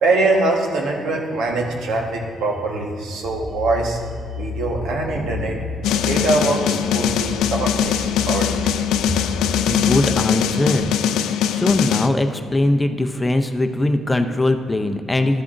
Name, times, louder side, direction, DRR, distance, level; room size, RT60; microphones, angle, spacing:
voice 1, 0.0-4.0 4.4-5.6 6.0-8.7, right 2 dB, 80° right, 1 dB, 1.3 m, -23 dB
sound 1, 3.2-10.9, left 4 dB, 70° left, 0.7 m, -32 dB
sound 2, 5.8-12.1, left 9 dB, 90° left, 0.3 m, -21 dB
voice 2, 9.7-10.8 11.5-15.4, left 2 dB, 15° left, 7 dB, 0.5 m, -20 dB
12.5 x 8.3 x 2.6 m, 2.3 s
cardioid pair, 90°, 0 cm